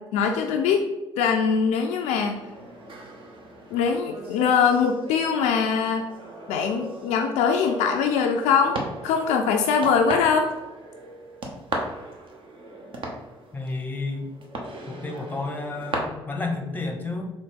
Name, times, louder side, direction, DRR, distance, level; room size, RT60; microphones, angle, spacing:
voice 1, 0.0-2.3 3.7-6.0 6.5-10.5, left 6 dB, 60° left, 3 dB, 0.4 m, -22 dB
sound 1, 2.3-15.9, right 2 dB, 40° right, 0.8 m, -38 dB
voice 2, 13.5-14.3 14.9-17.3, left 3 dB, 15° left, 4 dB, 0.7 m, -31 dB
4.0 x 2.5 x 3.6 m, 1.0 s
figure-of-eight pair, 50°, 13 cm